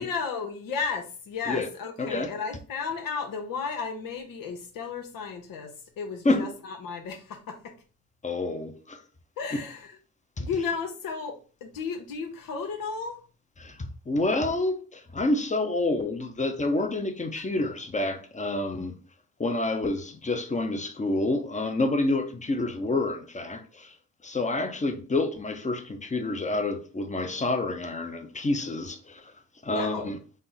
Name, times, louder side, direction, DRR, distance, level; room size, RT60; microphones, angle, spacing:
voice 1, 0.0-7.7 9.4-9.9 10.4-11.4 11.6-13.2 17.3-17.4 29.7-30.1, left 5 dB, 75° left, 0.9 m, -34 dB
voice 2, 2.0-2.3 6.2-6.5 8.2-9.0 9.5-9.6 10.4-10.5 13.6-19.0 19.4-23.9 24.2-29.3 29.6-30.2, left 2 dB, 20° left, 0.7 m, -28 dB
4.2 x 2.0 x 3.9 m
supercardioid pair, 55°, 33 cm